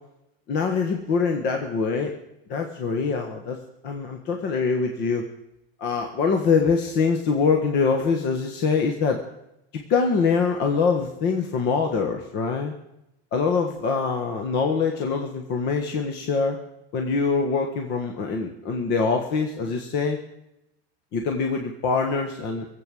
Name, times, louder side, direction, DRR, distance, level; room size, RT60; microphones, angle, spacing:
voice 1, 0.5-2.1 2.5-3.6 3.8-5.2 5.8-9.2 9.9-12.7 13.3-16.6 16.9-20.2 21.1-22.7, left 5 dB, 35° left, 3 dB, 1.4 m, -24 dB
20.0 x 8.1 x 7.6 m, 0.85 s
supercardioid pair, 160°, 30 cm